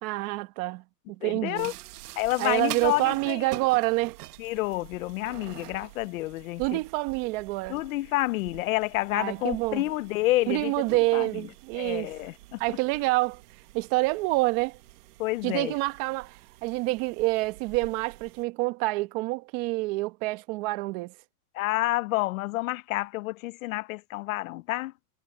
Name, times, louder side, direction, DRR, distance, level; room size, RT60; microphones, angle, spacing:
voice 1, 0.0-0.8 1.2-1.7 2.4-4.2 6.6-7.8 9.1-9.8 10.5-12.1 12.6-13.4 13.7-14.8 15.4-21.1, right 22 dB, 40° right, 1.2 m, -27 dB
voice 2, 1.2-1.7 2.2-3.5 4.4-6.8 7.7-10.9 11.1-11.4 11.7-12.8 15.2-15.7 21.5-24.9, left 19 dB, 60° left, 0.8 m, -29 dB
sound 1, 1.6-18.4, right 17 dB, 75° right, 1.7 m, -46 dB
supercardioid pair, 165°, 47 cm